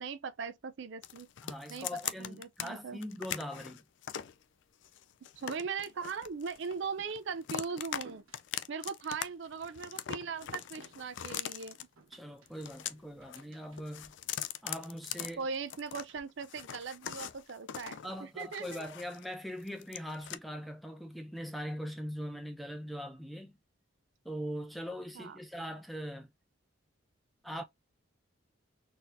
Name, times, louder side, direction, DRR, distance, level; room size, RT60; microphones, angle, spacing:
voice 1, 0.0-1.3 1.7-3.0 5.4-8.2 8.7-11.9 15.4-18.8 25.1-25.4, right 5 dB, 60° right, 0.4 m, -39 dB
sound 1, 1.0-2.7 3.0-4.3 4.8-6.9 7.1-8.0 8.3-9.2 9.5-11.8 12.5-13.4 13.7-16.0 16.4-19.3 19.6-20.4, left 10 dB, 60° left, 0.3 m, -41 dB
voice 2, 1.4-3.8 12.1-14.1 14.6-15.4 18.0-23.6 24.2-26.3 27.4-27.6, equal, ahead, 0.5 m, -41 dB
sound 2, 6.5-16.2, right 3 dB, 90° right, 1.0 m, -61 dB
4.0 x 2.7 x 2.5 m
head